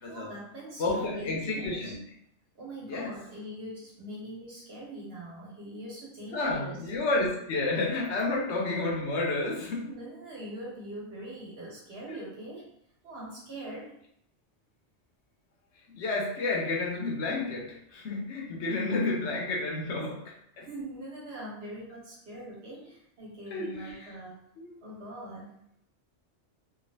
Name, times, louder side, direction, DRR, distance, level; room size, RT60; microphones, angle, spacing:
voice 1, 0.1-1.9 2.5-6.8 8.2-8.3 9.8-12.7 13.0-13.9 20.0-20.1 20.6-24.3 24.8-25.5, right 1 dB, 60° right, -6 dB, 1.5 m, -42 dB
voice 2, 0.8-1.9 2.9-3.2 6.3-10.0 12.1-12.2 15.9-20.7 23.5-24.1 24.6-24.8, left 2 dB, 75° left, -1 dB, 1.0 m, -31 dB
3.0 x 2.6 x 2.7 m, 0.72 s
omnidirectional pair, 1.2 m